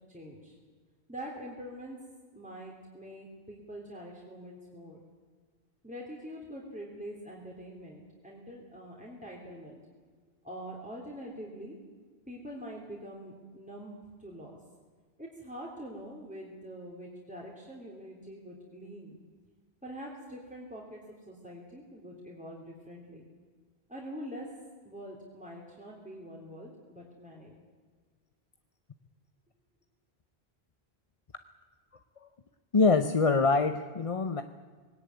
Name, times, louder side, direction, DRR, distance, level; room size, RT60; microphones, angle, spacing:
voice 1, 0.1-0.5 1.1-2.0 2.3-5.0 5.8-9.8 10.4-11.7 12.3-14.6 15.2-19.2 19.8-21.0 21.3-23.2 23.9-24.5 24.8-27.5, equal, 5° right, -3 dB, 3.1 m, -44 dB
voice 2, 32.7-34.4, left 4 dB, 35° left, 8 dB, 0.8 m, -24 dB
20.0 x 17.5 x 9.5 m, 1.5 s
omnidirectional pair, 1.1 m